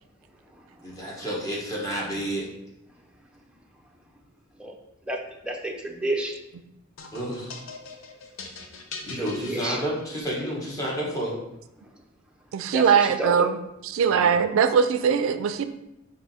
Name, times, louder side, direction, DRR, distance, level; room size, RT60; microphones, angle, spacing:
voice 1, 0.8-2.4 7.1-7.6 9.0-11.3 14.0-14.4, equal, 15° left, -5 dB, 1.2 m, -30 dB
voice 2, 5.1-6.4 9.1-9.8 12.7-13.5, right 1 dB, 5° right, 0 dB, 0.5 m, -30 dB
sound 1, 7.0-10.4, left 4 dB, 85° left, 0.6 m, -41 dB
voice 3, 12.5-13.6 13.8-15.6, right 7 dB, 80° right, 10 dB, 0.3 m, -21 dB
4.7 x 2.7 x 4.1 m, 0.87 s
head